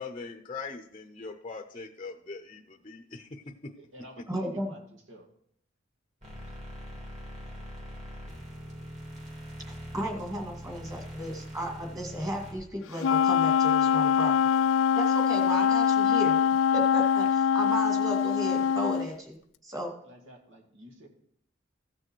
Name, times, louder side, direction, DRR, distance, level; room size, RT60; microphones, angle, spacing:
voice 1, 0.0-3.7, left 4 dB, 25° left, 4 dB, 0.6 m, -41 dB
voice 2, 3.8-4.8 5.1-5.3 20.0-21.1, equal, 80° right, 0 dB, 2.1 m, -49 dB
voice 3, 4.3-4.7 9.9-14.6 15.0-16.4 16.7-19.4 19.6-19.9, equal, 20° right, 1 dB, 2.1 m, -34 dB
sound 1, 6.2-12.5, equal, 40° right, 3.0 m, -42 dB
Wind instrument woodwind instrument, 13.0-19.1, left 7 dB, 75° left, 0.4 m, -23 dB
15.0 x 6.5 x 4.5 m, 0.68 s
head